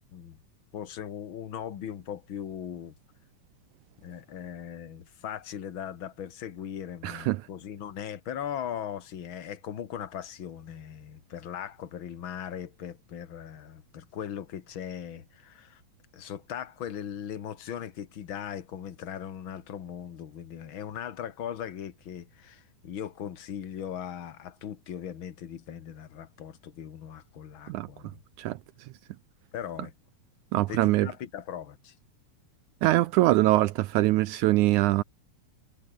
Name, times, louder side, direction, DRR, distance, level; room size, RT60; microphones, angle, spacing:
voice 1, 0.7-2.9 4.0-15.8 16.1-28.2 29.5-29.9 30.7-31.9, left 9 dB, 50° left, 1.7 m, -39 dB
voice 2, 7.0-7.4 27.7-27.9 28.4-28.6 30.5-31.1 32.8-35.0, right 17 dB, 85° right, 1.7 m, -23 dB
omnidirectional pair, 4.2 m